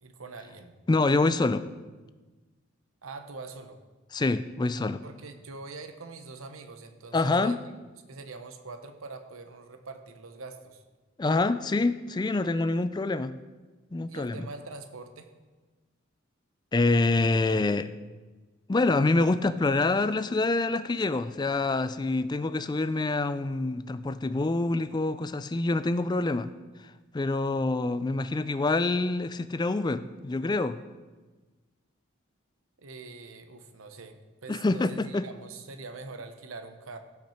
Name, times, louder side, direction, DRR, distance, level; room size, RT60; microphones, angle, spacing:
voice 1, 0.0-0.7 3.0-3.8 5.0-7.6 8.1-10.8 14.1-15.3 32.8-37.0, right 3 dB, 90° right, 8 dB, 1.0 m, -43 dB
voice 2, 0.9-1.7 4.1-5.0 7.1-7.6 11.2-13.3 13.9-14.4 16.7-17.9 18.7-26.5 27.1-30.8 34.5-35.3, left 2 dB, 20° left, 13 dB, 0.3 m, -26 dB
16.5 x 5.9 x 4.4 m, 1.3 s
head